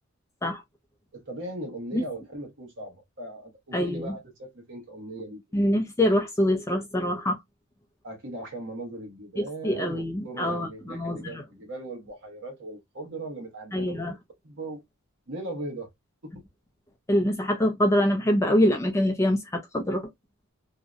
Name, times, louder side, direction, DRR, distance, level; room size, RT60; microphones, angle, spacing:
voice 1, 1.1-5.4 8.0-14.0 14.4-14.8 15.3-15.9 16.2-16.3, right 2 dB, 55° right, 0.9 m, -38 dB
voice 2, 3.7-4.1 5.5-7.4 9.4-11.4 13.7-14.1 17.1-20.0, left 1 dB, 15° left, 0.3 m, -25 dB
2.6 x 2.1 x 2.3 m
head